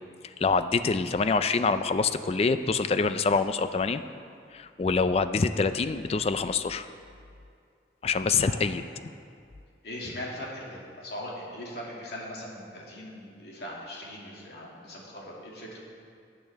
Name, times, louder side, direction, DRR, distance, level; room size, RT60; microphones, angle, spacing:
voice 1, 0.4-4.0 4.5-6.9 8.0-8.8, left 4 dB, 35° left, 11 dB, 0.3 m, -25 dB
voice 2, 9.8-15.8, left 1 dB, 60° left, -4 dB, 2.4 m, -40 dB
17.0 x 8.4 x 3.5 m, 2.3 s
head